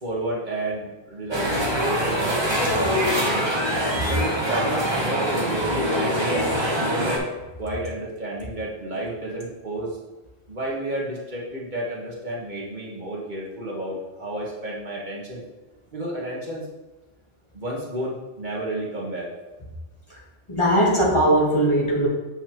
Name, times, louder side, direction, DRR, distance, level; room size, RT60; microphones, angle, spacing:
voice 1, 0.0-2.4 2.8-3.5 4.1-6.4 6.8-7.3 7.6-10.0 10.5-15.4 15.9-16.7 17.5-19.3, right 1 dB, 45° right, -5 dB, 1.5 m, -31 dB
sound 1, 1.3-7.2, equal, 25° right, 1.1 m, -24 dB
voice 2, 20.5-22.1, right 1 dB, 30° left, -4 dB, 1.3 m, -20 dB
7.6 x 5.6 x 3.0 m, 1.1 s
omnidirectional pair, 1.1 m